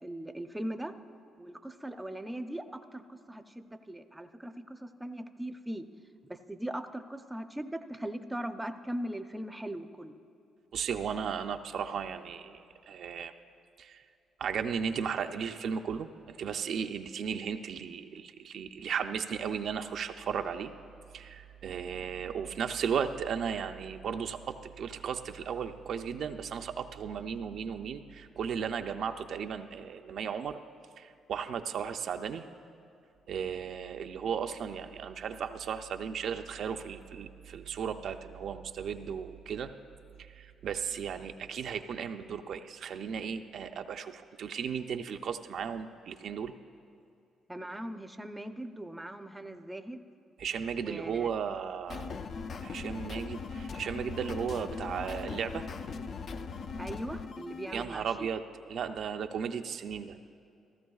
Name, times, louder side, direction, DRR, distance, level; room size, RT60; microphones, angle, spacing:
voice 1, 0.0-0.9 1.4-5.9 6.3-10.2 47.5-50.0 50.8-51.3 56.8-58.3, right 1 dB, 10° right, 8 dB, 0.5 m, -40 dB
voice 2, 10.7-12.6 12.9-13.3 13.8-14.0 14.4-20.7 21.1-30.6 31.0-32.4 33.3-39.7 40.2-46.5 50.4-52.1 52.6-55.6 57.7-58.4 58.7-60.2, right 7 dB, 65° right, 6 dB, 0.4 m, -35 dB
sound 1, 51.9-57.8, left 4 dB, 55° left, 0.4 m, -40 dB
15.5 x 14.0 x 2.4 m, 2.7 s
cardioid pair, 90°, 0 cm